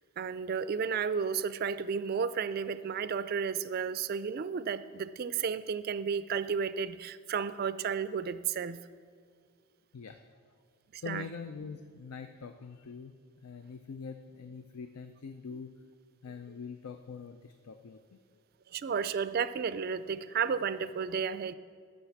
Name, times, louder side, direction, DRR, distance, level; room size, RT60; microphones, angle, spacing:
voice 1, 0.2-8.8 10.9-11.2 18.7-21.5, right 6 dB, 45° right, 14 dB, 0.3 m, -32 dB
voice 2, 11.0-13.2 13.4-15.7 16.2-18.2, left 5 dB, 80° left, 8 dB, 0.5 m, -44 dB
11.5 x 6.5 x 7.1 m, 2.1 s
head